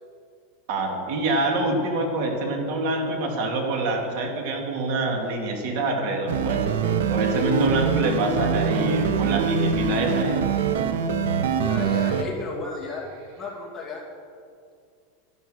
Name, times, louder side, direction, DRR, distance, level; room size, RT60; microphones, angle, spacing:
voice 1, 0.7-6.7 7.1-10.4, right 2 dB, 55° right, 2 dB, 2.4 m, -26 dB
sound 1, 6.3-12.2, right 5 dB, 85° right, 1.0 m, -23 dB
voice 2, 11.6-13.1 13.4-14.0, left 3 dB, 10° left, -4 dB, 2.5 m, -33 dB
12.0 x 11.5 x 6.4 m, 2.3 s
supercardioid pair, 160°, 0 cm